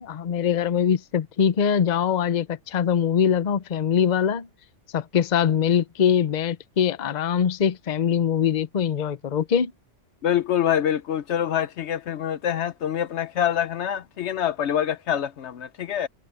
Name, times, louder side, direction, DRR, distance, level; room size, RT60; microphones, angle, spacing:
voice 1, 0.0-4.5 4.9-9.7, left 8 dB, 40° left, 0.7 m, -23 dB
voice 2, 10.2-16.1, left 10 dB, 70° left, 0.9 m, -25 dB
omnidirectional pair, 1.3 m